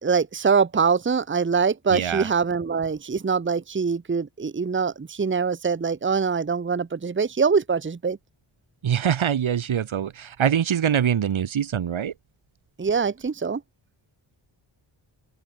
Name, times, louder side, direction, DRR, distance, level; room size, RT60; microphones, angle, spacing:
voice 1, 0.0-8.2 12.8-13.6, right 5 dB, 25° right, 1.1 m, -23 dB
voice 2, 1.9-2.3 8.8-12.1, right 9 dB, 75° right, 1.8 m, -24 dB
open air
wide cardioid pair, 170°, 49 cm